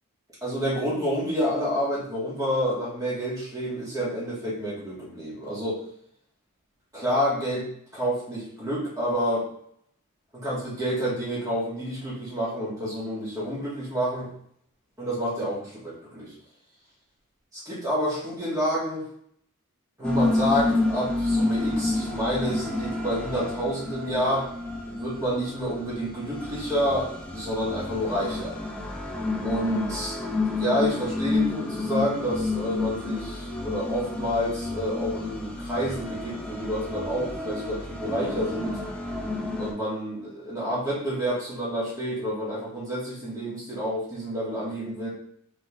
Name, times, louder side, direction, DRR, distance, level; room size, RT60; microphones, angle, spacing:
voice 1, 0.4-5.8 6.9-7.7 7.9-9.5 10.3-14.3 15.0-16.3 17.5-19.0 20.0-24.5 24.9-28.6 29.4-30.2 30.6-38.8 39.6-45.1, equal, 15° right, -7 dB, 1.7 m, -29 dB
sound 1, 20.0-39.7, left 2 dB, 5° left, 0.6 m, -30 dB
3.7 x 3.6 x 3.5 m, 0.67 s
head